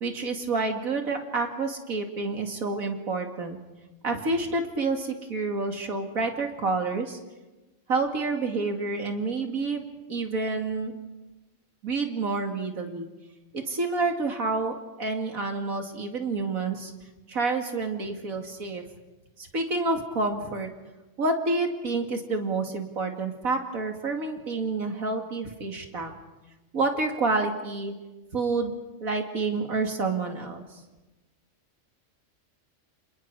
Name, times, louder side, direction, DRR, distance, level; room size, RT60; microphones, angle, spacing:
voice 1, 0.0-3.6 4.0-7.2 7.9-9.8 10.1-11.0 11.8-13.1 13.5-16.9 17.3-18.8 19.4-20.7 21.2-26.1 26.7-27.9 28.3-28.7 29.0-30.6, right 3 dB, 90° right, 3 dB, 2.8 m, -28 dB
29.5 x 27.5 x 4.8 m, 1.1 s
omnidirectional pair, 1.4 m